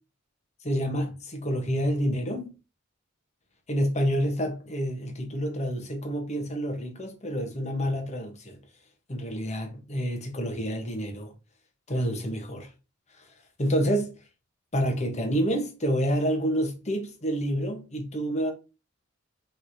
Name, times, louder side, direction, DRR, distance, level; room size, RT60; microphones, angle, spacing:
voice 1, 0.6-2.5 3.7-8.6 9.1-11.3 11.9-12.7 13.6-14.2 14.7-18.5, equal, 35° left, 1.2 m, -28 dB
5.6 x 3.3 x 2.8 m
head